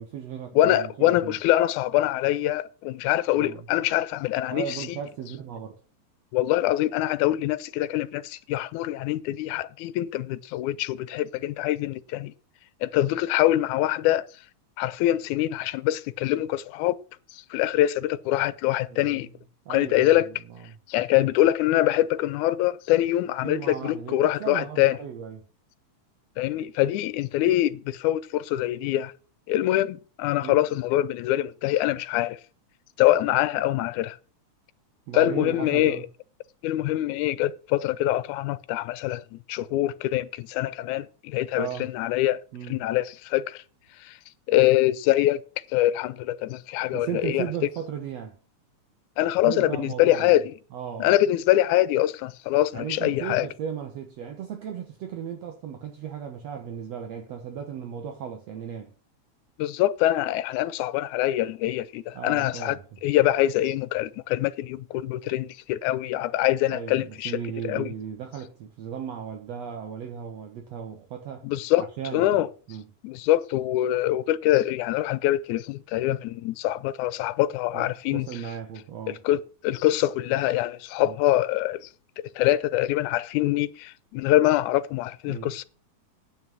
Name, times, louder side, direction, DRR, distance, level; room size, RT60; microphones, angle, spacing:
voice 1, 0.0-1.4 3.3-3.7 4.5-5.7 18.9-19.1 19.7-20.8 21.2-21.3 23.4-25.4 30.4-30.7 35.1-36.0 41.5-41.9 42.5-42.8 46.9-48.4 49.5-50.4 50.7-51.1 52.7-58.9 62.1-63.0 66.7-71.5 72.0-72.9 77.7-79.2 81.0-81.2 85.3-85.6, right 8 dB, 65° right, 2.1 m, -36 dB
voice 2, 0.6-4.7 6.3-12.3 12.8-14.3 14.8-17.0 17.3-19.3 19.7-20.3 20.9-25.0 26.4-29.1 29.5-32.4 33.0-34.2 35.1-36.0 36.6-42.4 42.7-43.6 44.0-44.1 44.5-45.4 45.7-47.5 49.2-50.4 51.0-53.5 59.6-67.4 67.6-67.9 71.4-71.9 72.1-72.5 73.0-78.3 79.1-81.9 82.4-85.7, left 14 dB, 85° left, 2.1 m, -24 dB
9.2 x 6.1 x 7.5 m
omnidirectional pair, 3.4 m